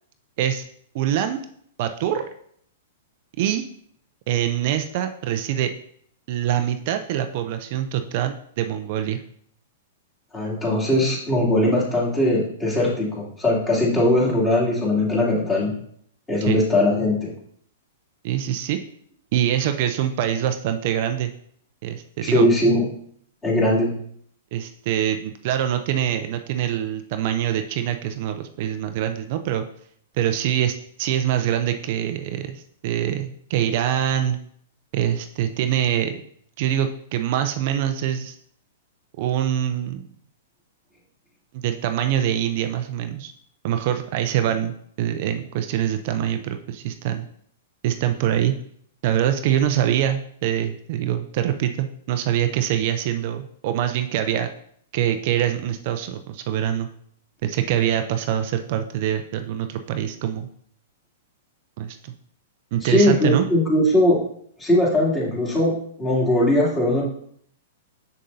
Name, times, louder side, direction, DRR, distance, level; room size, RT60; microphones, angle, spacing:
voice 1, 0.9-1.4 1.8-2.2 3.4-3.7 4.3-5.7 6.3-9.2 16.4-16.6 18.2-18.8 19.3-21.3 21.8-22.5 24.5-29.6 30.2-34.4 34.9-36.2 36.6-38.4 39.2-40.0 41.5-43.3 43.6-47.3 47.8-48.5 49.0-54.5 54.9-56.9 57.4-60.5 61.8-62.1 62.7-63.5, right 10 dB, 50° right, 8 dB, 0.4 m, -24 dB
voice 2, 10.3-15.7 16.3-17.3 22.2-22.8 23.4-23.9 62.8-64.2 64.6-65.7 66.0-67.0, left 1 dB, 20° left, -5 dB, 2.7 m, -20 dB
6.4 x 6.4 x 2.7 m, 0.65 s
hypercardioid pair, 115°, 0 cm